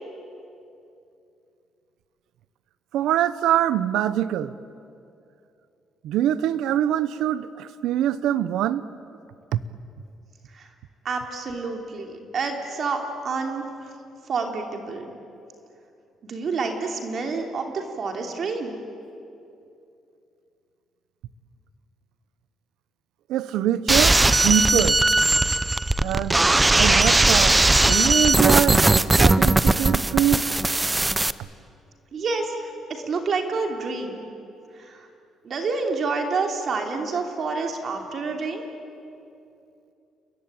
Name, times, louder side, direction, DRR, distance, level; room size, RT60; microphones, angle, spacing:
voice 1, 2.9-4.5 6.0-8.9 9.5-9.6 23.3-25.0 26.0-26.4 26.7-30.5, right 11 dB, 90° right, 0.9 m, -24 dB
voice 2, 11.0-13.9 14.3-15.0 16.2-18.8 32.1-34.3 34.7-35.1 35.4-38.6, right 4 dB, 45° right, 3.0 m, -28 dB
sound 1, 23.9-31.3, right 2 dB, 15° right, 0.6 m, -19 dB
29.5 x 22.0 x 8.9 m
cardioid pair, 130°, 0 cm